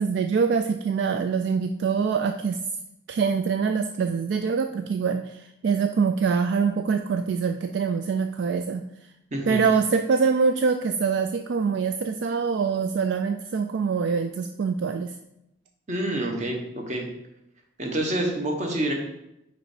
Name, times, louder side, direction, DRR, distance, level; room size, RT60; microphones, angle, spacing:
voice 1, 0.0-2.6 3.1-8.8 9.5-15.2, right 5 dB, 60° right, 7 dB, 0.3 m, -24 dB
voice 2, 15.9-17.1 17.8-18.9, right 1 dB, 40° right, 1 dB, 1.1 m, -27 dB
5.0 x 4.4 x 4.9 m, 0.85 s
head